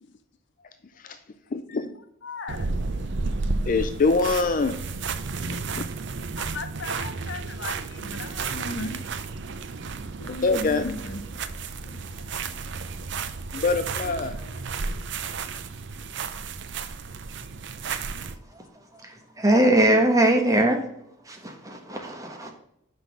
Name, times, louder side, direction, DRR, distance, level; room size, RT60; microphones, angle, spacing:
voice 1, 1.5-1.9 3.7-4.8 5.5-5.8 10.3-11.1 13.5-14.4, left 3 dB, 40° left, 9 dB, 0.4 m, -25 dB
voice 2, 2.2-2.7 6.4-9.0 10.2-11.2 11.8-12.0 13.6-13.7 14.3-14.6, left 3 dB, 60° left, 10 dB, 0.8 m, -37 dB
sound 1, 2.5-18.4, right 4 dB, 60° right, 0.6 m, -32 dB
voice 3, 19.4-20.8 21.3-22.5, right 1 dB, 15° right, 3 dB, 1.2 m, -21 dB
6.0 x 5.4 x 6.2 m, 0.77 s
head